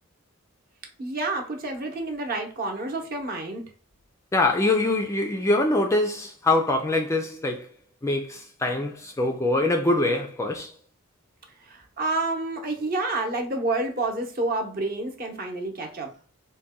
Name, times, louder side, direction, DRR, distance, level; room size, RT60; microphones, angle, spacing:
voice 1, 1.0-3.7 11.6-16.1, right 2 dB, 45° right, 0.8 m, -29 dB
voice 2, 4.3-7.7 8.0-10.7, left 2 dB, 15° left, 0.3 m, -24 dB
4.0 x 2.2 x 3.5 m
head